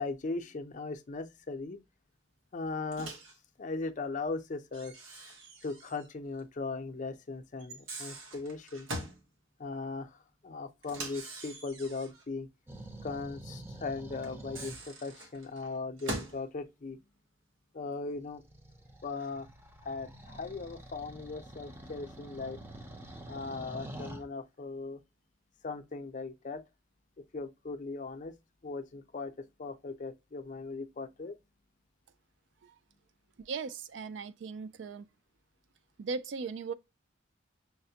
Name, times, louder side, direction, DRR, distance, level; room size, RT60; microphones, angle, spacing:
voice 1, 0.0-1.8 2.5-3.1 3.6-4.9 5.6-8.9 9.6-12.5 13.0-17.1 17.7-18.4 19.0-19.5 19.8-22.6 23.3-25.0 25.6-26.6 27.3-28.3 28.6-31.4, left 3 dB, 40° left, 0.5 m, -38 dB
Microwave oven, 2.9-3.4 4.7-6.1 6.4-6.5 7.6-9.2 10.8-12.3 14.2-16.4, right 1 dB, 90° right, 1.1 m, -43 dB
sound 1, 12.7-14.8 18.2-24.2, right 1 dB, 10° right, 0.5 m, -47 dB
voice 2, 33.5-35.1 36.0-36.7, right 5 dB, 65° right, 0.4 m, -38 dB
5.8 x 2.1 x 2.7 m
head